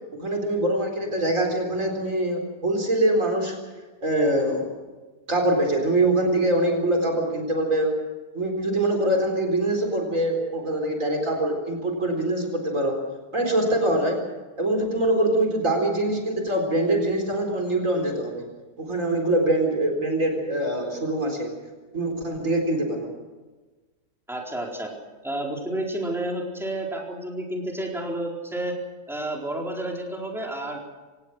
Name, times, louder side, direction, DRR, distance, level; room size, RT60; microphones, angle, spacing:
voice 1, 0.1-3.6 4.0-4.7 5.3-8.0 8.3-13.0 13.3-14.2 14.6-18.4 18.8-21.5 21.9-23.1, right 1 dB, 50° right, 2 dB, 4.5 m, -24 dB
voice 2, 24.3-24.9 25.2-28.8 29.1-30.8, right 1 dB, ahead, -1 dB, 4.2 m, -30 dB
26.0 x 18.0 x 6.4 m, 1.3 s
omnidirectional pair, 1.7 m